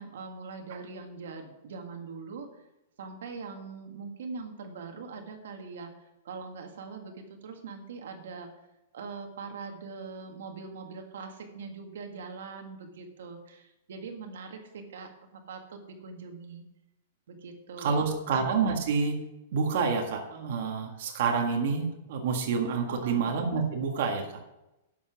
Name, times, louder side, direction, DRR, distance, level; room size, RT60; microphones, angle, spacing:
voice 1, 0.0-2.6 3.0-8.5 8.9-16.7 17.3-18.3 22.9-23.2, right 4 dB, 70° right, 4 dB, 1.7 m, -42 dB
voice 2, 17.8-19.2 19.5-24.3, right 5 dB, 50° right, 2 dB, 1.7 m, -28 dB
11.0 x 7.1 x 5.8 m, 0.94 s
supercardioid pair, 175°, 0 cm